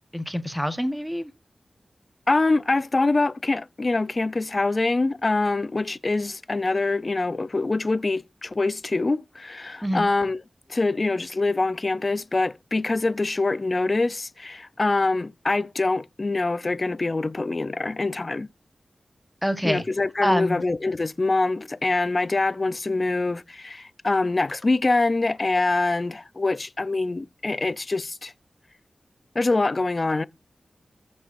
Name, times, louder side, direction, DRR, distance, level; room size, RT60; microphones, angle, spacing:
voice 1, 0.1-1.3 9.8-10.1 19.4-19.8 20.2-20.6, equal, ahead, 1.1 m, -25 dB
voice 2, 2.3-10.4 10.7-18.5 19.6-28.3 29.4-30.2, left 3 dB, 35° left, 0.5 m, -24 dB
15.0 x 5.5 x 2.5 m
wide cardioid pair, 110°, 0 cm